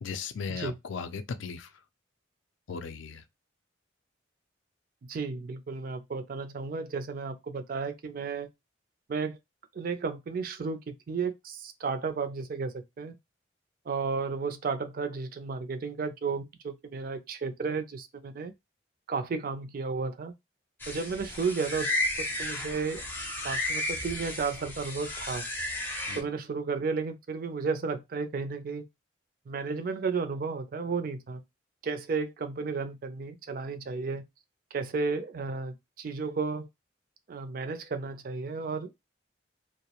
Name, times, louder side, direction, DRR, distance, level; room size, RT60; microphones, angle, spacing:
voice 1, 0.0-1.7 2.7-3.2 26.1-26.3, left 5 dB, 75° left, 0.4 m, -37 dB
voice 2, 5.0-8.5 9.1-9.4 9.7-13.2 13.9-18.5 19.1-20.3 20.9-23.0 23.4-25.4 26.1-28.8 29.5-31.4 31.8-34.2 34.7-36.7 37.3-38.9, right 4 dB, 45° right, 0.4 m, -33 dB
sound 1, 20.8-26.2, left 1 dB, 10° left, 0.5 m, -33 dB
2.3 x 2.0 x 2.8 m
head